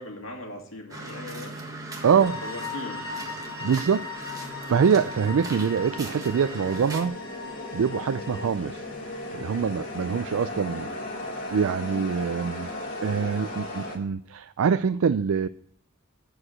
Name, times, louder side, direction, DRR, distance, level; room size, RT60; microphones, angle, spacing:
voice 1, 0.0-1.6 2.1-3.3 10.5-11.0, left 1 dB, 70° left, 2 dB, 2.2 m, -40 dB
sound 1, 0.9-7.1, right 1 dB, 15° right, 1.5 m, -39 dB
voice 2, 2.0-2.4 3.6-4.1 4.7-7.2 7.7-8.8 9.3-10.9 11.5-12.7 13.0-15.5, right 6 dB, 80° right, 12 dB, 0.4 m, -24 dB
sound 2, 2.2-8.5, left 5 dB, 20° left, 2.2 m, -39 dB
sound 3, 2.9-14.0, left 2 dB, 40° left, 2.5 m, -37 dB
12.5 x 4.8 x 8.6 m, 0.66 s
head